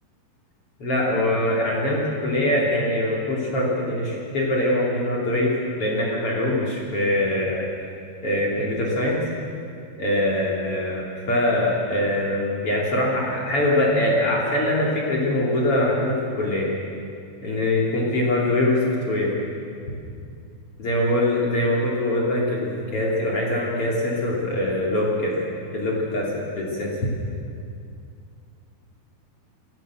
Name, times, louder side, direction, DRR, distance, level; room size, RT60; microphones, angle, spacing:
voice 1, 0.8-7.6 8.2-9.2 10.0-16.7 17.4-18.8 19.1-19.3 20.8-25.3 25.7-26.9, left 1 dB, 40° left, -3 dB, 3.5 m, -23 dB
27.0 x 13.5 x 7.7 m, 2.4 s
omnidirectional pair, 4.4 m